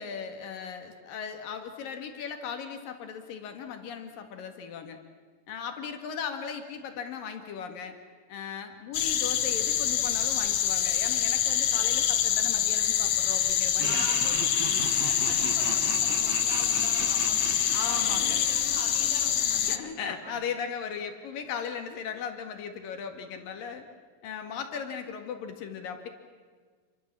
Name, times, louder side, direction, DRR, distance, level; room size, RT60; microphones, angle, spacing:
voice 1, 0.0-5.0 5.5-8.0 8.3-15.0 17.7-18.4 19.6-23.9 24.2-26.1, left 7 dB, 80° left, 6 dB, 3.5 m, -37 dB
sound 1, 8.9-19.8, left 10 dB, 60° left, 1.6 m, -26 dB
voice 2, 13.8-14.4 15.1-19.8 20.0-20.4, equal, 15° right, -1 dB, 7.1 m, -42 dB
Laughter, 13.8-20.0, right 9 dB, 65° right, 1.9 m, -39 dB
28.5 x 23.5 x 7.4 m, 1.5 s
omnidirectional pair, 3.9 m